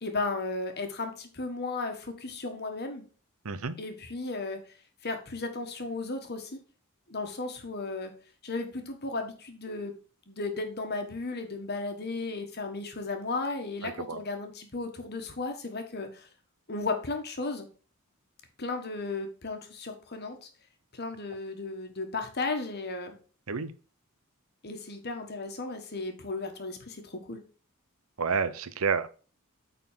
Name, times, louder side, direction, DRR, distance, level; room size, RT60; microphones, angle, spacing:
voice 1, 0.0-3.0 3.8-4.6 5.0-6.6 7.1-8.1 8.4-9.9 10.3-16.3 16.7-17.7 18.6-20.5 20.9-23.2 24.6-27.4, left 3 dB, 50° left, 1.4 m, -35 dB
voice 2, 3.4-3.8 13.8-14.2 23.5-23.7 28.2-29.1, right 5 dB, 75° right, 0.8 m, -29 dB
9.1 x 4.0 x 5.7 m
head